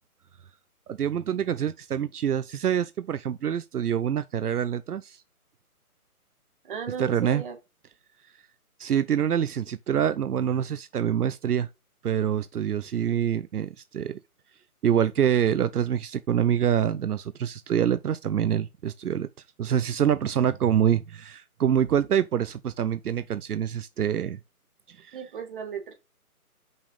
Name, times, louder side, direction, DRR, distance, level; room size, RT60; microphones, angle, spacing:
voice 1, 0.9-5.2 7.0-7.4 8.8-11.7 12.0-14.2 14.8-19.3 19.6-24.4 24.9-25.2, right 9 dB, 75° right, 0.7 m, -26 dB
voice 2, 6.6-7.6 25.1-25.9, right 7 dB, 35° right, 1.9 m, -35 dB
5.6 x 5.4 x 5.4 m
hypercardioid pair, 160°, 45 cm